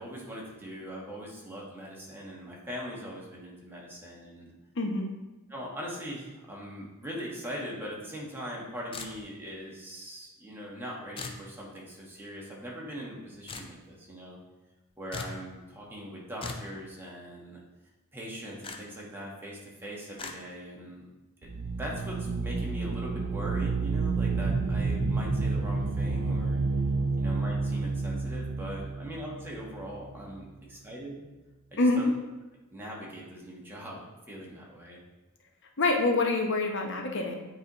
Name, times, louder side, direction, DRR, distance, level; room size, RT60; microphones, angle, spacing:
voice 1, 0.0-4.5 5.5-14.4 15.0-17.6 18.1-21.1 21.4-21.5 21.8-26.6 27.2-31.2 31.7-32.1 32.7-35.0, equal, 10° right, -4 dB, 1.2 m, -41 dB
voice 2, 4.8-5.1 31.8-32.0 35.8-37.5, left 2 dB, 55° left, 2 dB, 0.9 m, -26 dB
sound 1, 8.9-9.5 11.2-11.4 13.5-13.7 15.1-15.4 16.4-16.7 18.6-18.8 20.2-20.4, left 4 dB, 25° left, 0.4 m, -39 dB
sound 2, 21.4-30.1, right 3 dB, 60° right, 0.6 m, -30 dB
8.8 x 4.1 x 3.0 m, 1.1 s
head